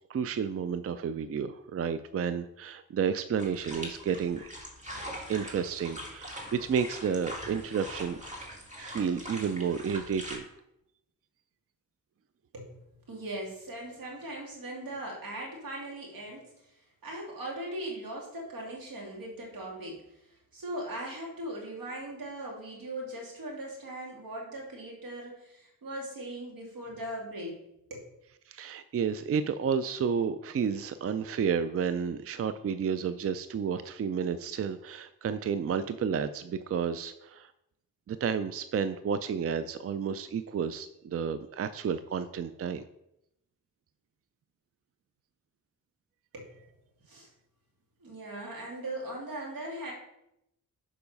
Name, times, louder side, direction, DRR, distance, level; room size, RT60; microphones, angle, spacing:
voice 1, 0.1-4.5 5.3-8.3 8.8-10.5 28.5-37.5 38.1-42.8, right 7 dB, 45° right, 12 dB, 0.4 m, -31 dB
sound 1, 3.4-10.4, equal, 20° right, 1.9 m, -42 dB
voice 2, 12.5-27.6 27.9-28.1 46.3-46.7 47.1-47.3 48.0-49.9, right 1 dB, 80° right, -2 dB, 2.5 m, -40 dB
6.9 x 5.0 x 5.3 m, 0.83 s
cardioid pair, 75°, 34 cm